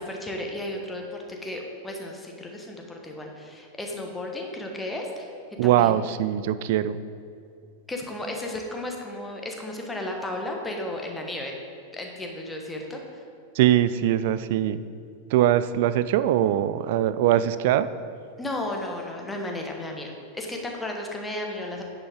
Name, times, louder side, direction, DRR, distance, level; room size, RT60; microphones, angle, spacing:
voice 1, 0.0-5.3 5.6-6.1 7.9-11.5 11.9-13.0 18.4-21.8, left 1 dB, 10° left, 1 dB, 1.3 m, -34 dB
voice 2, 5.6-7.0 13.5-14.8 15.3-17.9, right 12 dB, 50° right, 14 dB, 0.3 m, -22 dB
10.0 x 7.3 x 3.6 m, 2.4 s
figure-of-eight pair, 90°, 0 cm